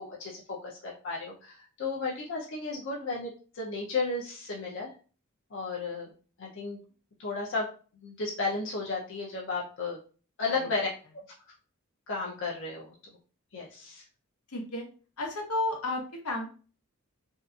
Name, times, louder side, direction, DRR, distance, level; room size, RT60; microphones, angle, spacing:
voice 1, 0.0-4.9 5.5-6.1 6.4-6.8 7.2-7.7 8.0-10.0 10.4-10.9 12.1-12.9 13.5-14.0, left 3 dB, 55° left, -3 dB, 0.5 m, -33 dB
voice 2, 14.5-14.9 15.2-16.5, left 1 dB, 80° left, 2 dB, 0.8 m, -32 dB
2.7 x 2.4 x 2.3 m, 0.38 s
head